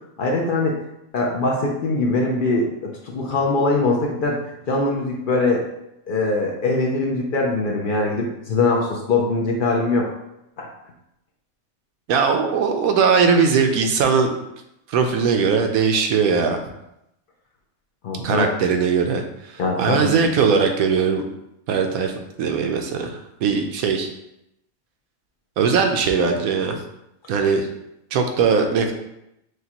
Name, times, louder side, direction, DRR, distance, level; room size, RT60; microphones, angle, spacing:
voice 1, 0.2-0.8 1.1-4.4 4.7-5.7 6.1-10.1 10.6-10.7 18.0-18.5 19.6-20.1, left 3 dB, 60° left, -1 dB, 0.5 m, -22 dB
voice 2, 12.1-14.3 14.9-16.6 18.2-19.5 19.8-21.2 21.7-22.1 22.4-24.1 25.6-26.8 27.3-27.7 28.1-28.9, right 5 dB, 85° right, 5 dB, 1.0 m, -20 dB
6.4 x 2.2 x 2.9 m, 0.84 s
omnidirectional pair, 1.5 m